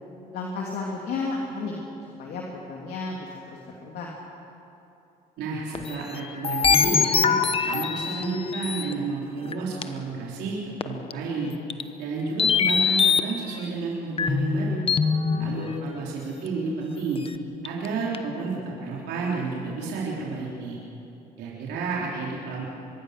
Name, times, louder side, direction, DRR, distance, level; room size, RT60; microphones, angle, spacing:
voice 1, 0.3-1.8 2.2-3.3 3.6-4.1 15.3-15.5, left 3 dB, 70° left, -2 dB, 2.9 m, -32 dB
voice 2, 5.4-7.3 7.7-11.5 12.0-14.9 15.4-17.2 17.6-20.8 21.4-22.7, right 4 dB, 80° right, -5 dB, 3.8 m, -31 dB
sound 1, 5.7-8.9 9.5-9.6 9.8-9.9 10.8-11.1 11.7-11.8 12.4-13.3 14.2-16.1 16.5-16.6 17.2-17.3 17.6-17.9 18.1-18.2, left 6 dB, 35° left, 1.0 m, -23 dB
24.5 x 22.0 x 6.7 m, 2.9 s
cardioid pair, 110°, 17 cm